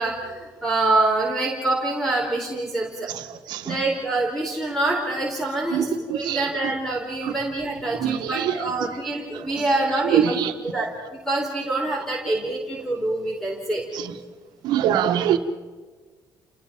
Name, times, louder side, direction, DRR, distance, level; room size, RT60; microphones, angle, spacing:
voice 1, 0.0-3.1 3.6-13.8, right 2 dB, 5° left, 0 dB, 4.3 m, -26 dB
voice 2, 5.7-6.4 7.2-7.3 8.0-8.5 10.1-10.5 13.9-14.1 14.6-15.4, right 10 dB, 75° right, 7 dB, 1.8 m, -23 dB
29.5 x 19.5 x 5.4 m, 1.4 s
cardioid pair, 120°, 7 cm